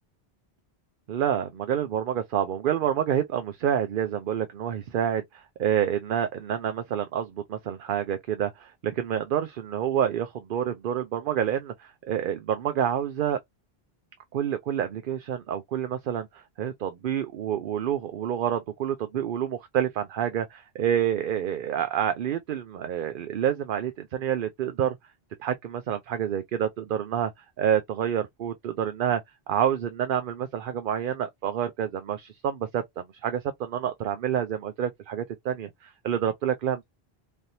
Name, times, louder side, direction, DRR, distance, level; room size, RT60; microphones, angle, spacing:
voice 1, 1.1-13.4 14.3-25.0 25.4-29.2 29.5-36.8, right 9 dB, 65° right, 0.7 m, -28 dB
3.3 x 2.8 x 2.6 m
omnidirectional pair, 1.0 m